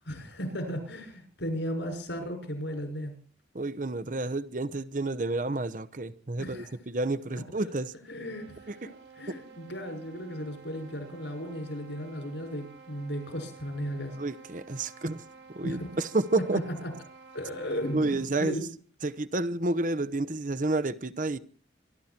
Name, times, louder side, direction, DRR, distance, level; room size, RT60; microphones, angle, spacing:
voice 1, 0.0-3.1 6.4-6.7 7.3-7.4 8.1-8.7 9.2-14.2 15.6-15.9 16.5-16.9 17.3-18.7, equal, 75° left, 6.1 m, -35 dB
voice 2, 3.5-7.9 8.7-8.9 9.3-9.4 14.2-15.2 15.5-16.6 17.9-18.6 19.0-21.4, right 2 dB, 45° right, 0.8 m, -30 dB
sound 1, 8.1-18.4, right 4 dB, 90° right, 5.0 m, -52 dB
25.0 x 12.5 x 4.4 m
head